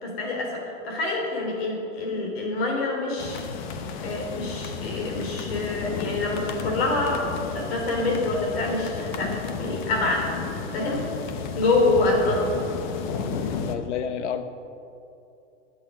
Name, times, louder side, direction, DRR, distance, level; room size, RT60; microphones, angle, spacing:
voice 1, 0.0-3.4 4.0-7.3 7.5-10.3 10.7-11.0 11.5-12.5, left 2 dB, 55° left, 0 dB, 3.5 m, -26 dB
sound 1, 3.2-13.8, left 5 dB, 40° left, 0.9 m, -33 dB
voice 2, 12.0-12.4 13.7-14.5, left 8 dB, 70° left, 10 dB, 1.0 m, -31 dB
15.5 x 8.7 x 5.3 m, 2.8 s
supercardioid pair, 170°, 36 cm